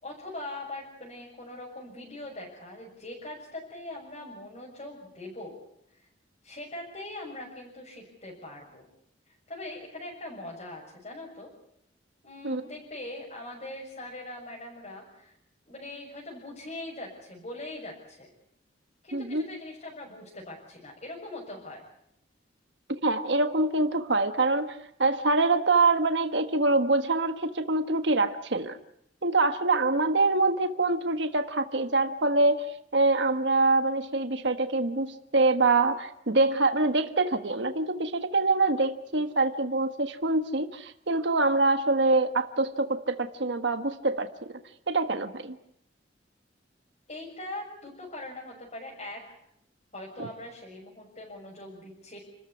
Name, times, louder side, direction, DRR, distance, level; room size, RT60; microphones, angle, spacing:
voice 1, 0.0-5.5 5.9-6.1 6.4-8.8 9.3-11.5 12.2-15.3 15.7-18.3 19.0-21.9 47.1-49.2 49.9-52.2, left 1 dB, 40° left, -3 dB, 6.7 m, -41 dB
voice 2, 19.1-19.4 22.9-24.7 25.0-28.8 29.2-44.5 44.9-45.6 50.2-50.3, right 3 dB, 70° right, 7 dB, 1.5 m, -25 dB
29.5 x 14.0 x 9.7 m, 0.77 s
head